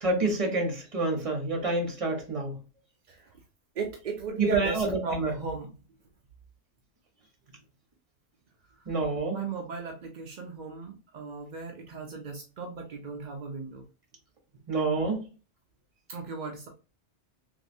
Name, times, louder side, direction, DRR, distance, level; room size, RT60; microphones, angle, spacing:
voice 1, 0.0-2.5 4.4-5.3 8.9-9.4 14.7-15.2, right 2 dB, 30° right, 1 dB, 1.0 m, -28 dB
voice 2, 3.8-5.7 7.5-7.6 9.3-13.9 16.1-16.7, right 5 dB, 60° right, 2 dB, 0.5 m, -36 dB
3.1 x 2.6 x 2.6 m, 0.33 s
omnidirectional pair, 1.2 m